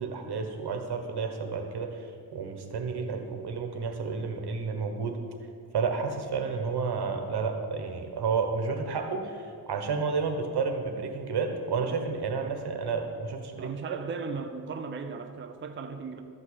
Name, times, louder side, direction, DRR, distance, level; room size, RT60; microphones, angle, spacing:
voice 1, 0.0-5.2 5.7-14.0, right 5 dB, 80° right, 1.4 m, -31 dB
voice 2, 13.6-16.2, right 4 dB, 30° right, 0.6 m, -36 dB
13.0 x 5.5 x 8.3 m
wide cardioid pair, 165°, 39 cm